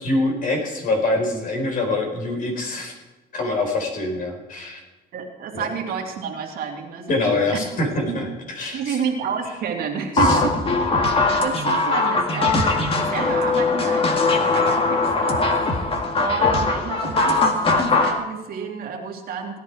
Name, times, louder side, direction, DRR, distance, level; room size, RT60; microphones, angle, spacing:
voice 1, 0.0-2.9 3.3-4.8 5.5-5.6 7.1-8.3 8.6-9.0 10.1-10.4, left 2 dB, 55° left, 3 dB, 4.5 m, -24 dB
voice 2, 5.1-8.2 8.7-10.6 10.9-11.0 11.4-15.5 16.1-19.6, right 6 dB, 60° right, 1 dB, 2.5 m, -30 dB
sound 1, 10.2-18.2, left 3 dB, 35° left, 2.1 m, -20 dB
17.0 x 11.0 x 4.8 m, 1.1 s
cardioid pair, 110°, 17 cm